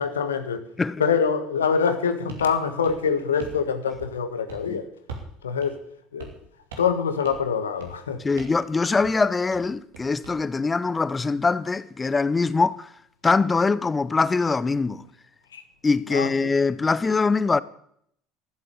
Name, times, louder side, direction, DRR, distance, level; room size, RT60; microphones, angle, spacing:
voice 1, 0.0-0.7 1.0-4.9 5.4-5.8 6.1-6.3 6.8-8.2 15.5-15.6 16.1-16.5, left 6 dB, 85° left, 1.3 m, -25 dB
sound 1, 2.3-2.5 2.8-3.6 3.9-4.2 4.5-4.7 5.1-5.3 5.6-5.7 6.2-6.4 6.7-7.0 7.2-7.5 7.8-8.0 8.4-8.6 8.9-9.1 9.5-10.4, right 3 dB, 80° right, 2.8 m, -41 dB
voice 2, 8.2-12.9 13.2-15.1 15.8-17.6, left 4 dB, 25° left, 0.8 m, -23 dB
14.0 x 7.9 x 9.6 m
hypercardioid pair, 65°, 0 cm